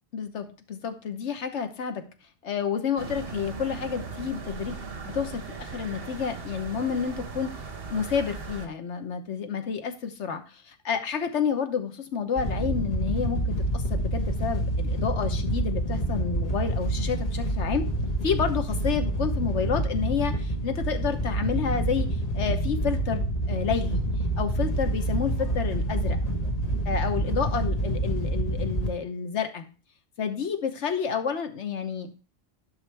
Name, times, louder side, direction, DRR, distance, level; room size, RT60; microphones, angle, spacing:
voice 1, 0.1-2.0 2.4-4.8 5.1-7.5 7.9-17.9 18.2-24.0 24.4-26.2 26.8-29.6 30.2-32.1, left 7 dB, 85° left, 7 dB, 1.3 m, -30 dB
sound 1, 3.0-8.7, right 4 dB, 60° right, 1.2 m, -38 dB
Wind / Boat Water vehicle, 12.4-28.9, right 1 dB, 35° left, 1.4 m, -27 dB
11.0 x 5.7 x 3.4 m, 0.36 s
omnidirectional pair, 1.2 m